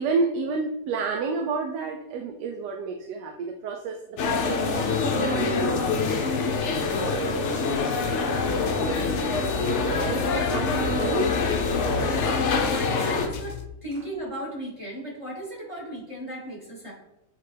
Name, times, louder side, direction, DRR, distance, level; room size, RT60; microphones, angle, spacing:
voice 1, 0.0-6.2 6.9-7.6 8.4-9.3 9.6-11.4, right 4 dB, 80° right, 3 dB, 1.2 m, -31 dB
sound 1, 4.2-13.3, left 4 dB, 60° left, 0.8 m, -25 dB
sound 2, 8.3-13.7, left 10 dB, 80° left, 1.2 m, -35 dB
voice 2, 8.8-9.2 11.8-16.9, right 1 dB, 20° right, -3 dB, 1.2 m, -36 dB
8.2 x 3.6 x 3.3 m, 0.91 s
omnidirectional pair, 1.9 m